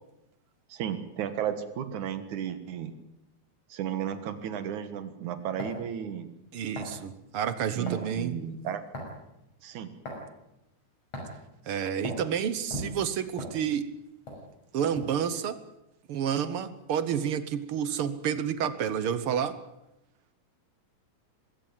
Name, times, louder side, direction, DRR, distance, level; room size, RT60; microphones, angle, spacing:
voice 1, 0.7-2.9 3.7-6.3 7.8-8.8 9.6-9.9, right 9 dB, 75° right, 11 dB, 3.0 m, -34 dB
sound 1, 5.6-5.9 6.7-7.0 7.9-8.1 8.9-9.2 10.0-10.2 11.1-11.4 12.0-12.3 12.7-14.0 14.3-14.4 14.9-15.2, left 1 dB, 50° left, 7.0 m, -37 dB
voice 2, 6.5-8.4 11.7-13.9 14.7-15.6 16.1-19.6, right 8 dB, 60° right, 14 dB, 1.6 m, -29 dB
20.5 x 17.0 x 9.0 m, 0.89 s
omnidirectional pair, 3.5 m